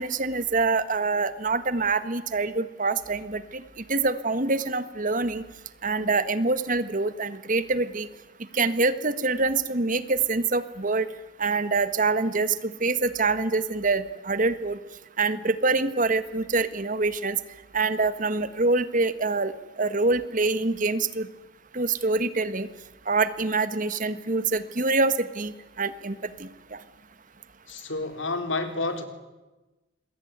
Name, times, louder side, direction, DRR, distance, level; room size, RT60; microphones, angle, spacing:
voice 1, 0.0-5.4 5.8-8.1 8.5-11.1 11.4-14.8 15.2-17.4 17.7-19.5 19.8-21.3 21.7-22.7 23.1-26.8, right 3 dB, 45° right, 13 dB, 1.5 m, -25 dB
voice 2, 27.7-29.1, left 3 dB, 75° left, 7 dB, 3.7 m, -29 dB
27.0 x 22.0 x 9.5 m, 1.1 s
head